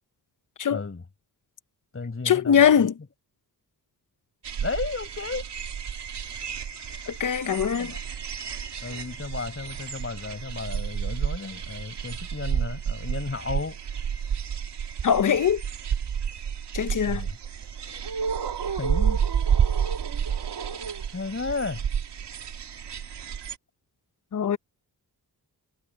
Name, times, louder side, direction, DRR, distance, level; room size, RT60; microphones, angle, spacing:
voice 1, 0.7-1.0 1.9-2.9 4.6-5.5 7.4-8.0 8.8-13.8 17.1-17.4 18.7-19.2 21.1-21.8, left 4 dB, 35° left, 7.3 m, -33 dB
voice 2, 2.2-2.9 7.1-7.9 15.0-15.6 16.7-17.2 24.3-24.6, left 8 dB, 50° left, 0.9 m, -21 dB
sound 1, 4.4-23.5, right 7 dB, 85° right, 2.2 m, -30 dB
wide cardioid pair, 110°, 40 cm